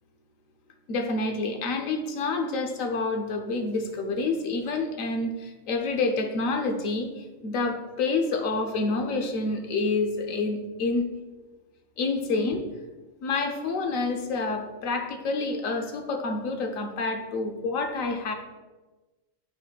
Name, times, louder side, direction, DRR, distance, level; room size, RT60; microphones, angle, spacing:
voice 1, 0.9-11.1 12.0-12.6 13.2-18.3, left 3 dB, 85° left, 5 dB, 1.2 m, -28 dB
10.5 x 4.2 x 2.3 m, 1.2 s
omnidirectional pair, 1.4 m